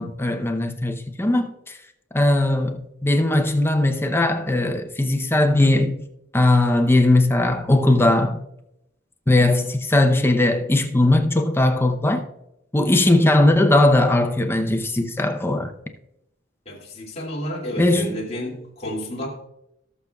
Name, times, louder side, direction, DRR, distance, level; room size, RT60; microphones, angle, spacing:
voice 1, 0.0-1.8 2.1-6.0 6.3-8.4 9.3-12.2 12.7-15.7 17.8-18.1, left 2 dB, 10° left, 0.7 m, -19 dB
voice 2, 16.7-19.3, equal, 35° left, 2.5 m, -31 dB
19.0 x 6.7 x 2.3 m
head